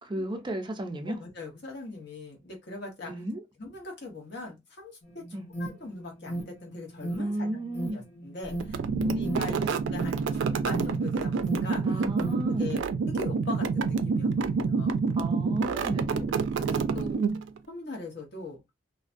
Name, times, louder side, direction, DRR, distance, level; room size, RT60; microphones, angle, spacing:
voice 1, 0.0-1.2 3.1-3.4 5.3-5.5 7.2-8.0 8.9-9.7 11.8-12.8 15.2-16.2, right 1 dB, 25° right, 0.4 m, -33 dB
voice 2, 1.1-3.1 3.6-5.2 5.6-7.5 7.7-12.0 12.5-15.0 16.1-17.2 17.7-18.6, left 2 dB, 65° left, 1.0 m, -41 dB
Alarm, 5.0-12.5, right 1 dB, 35° left, 0.7 m, -38 dB
sound 1, 8.6-17.6, right 5 dB, 90° right, 0.3 m, -28 dB
2.4 x 2.2 x 2.5 m
head